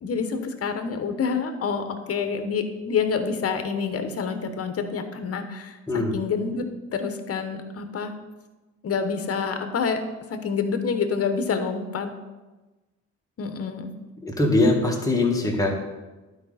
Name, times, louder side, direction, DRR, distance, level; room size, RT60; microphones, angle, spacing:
voice 1, 0.0-6.6 6.9-8.1 8.8-10.0 10.3-12.1 13.4-13.9, left 5 dB, 50° left, 7 dB, 1.1 m, -27 dB
voice 2, 14.2-15.7, left 2 dB, 10° left, -1 dB, 1.9 m, -21 dB
11.5 x 5.0 x 4.2 m, 1.2 s
cardioid pair, 90°, 30 cm